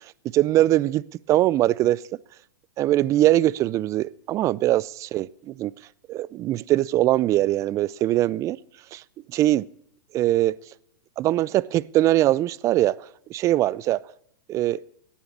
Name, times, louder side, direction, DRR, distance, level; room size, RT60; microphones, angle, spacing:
voice 1, 0.3-1.0 1.3-2.0 2.8-5.7 6.1-8.6 8.9-9.0 9.3-9.7 10.1-10.5 11.2-13.0 13.3-14.0 14.5-14.8, right 14 dB, 30° right, 0.4 m, -21 dB
17.5 x 7.2 x 6.6 m
hypercardioid pair, 120°, 11 cm